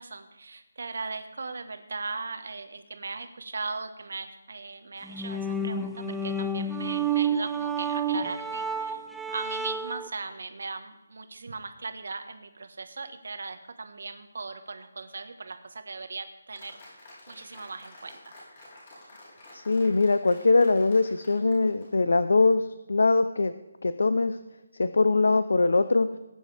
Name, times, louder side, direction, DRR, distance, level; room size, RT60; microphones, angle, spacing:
voice 1, 0.0-16.8 17.3-18.3, right 3 dB, 55° right, 8 dB, 1.3 m, -38 dB
sound 1, 5.0-10.1, right 4 dB, ahead, 0.4 m, -30 dB
Applause, 16.6-22.5, left 1 dB, 25° left, 3.8 m, -50 dB
voice 2, 19.5-23.5 23.8-24.4 24.8-26.1, left 3 dB, 70° left, 12 dB, 0.6 m, -22 dB
19.0 x 9.3 x 3.4 m, 1.0 s
hypercardioid pair, 180°, 0 cm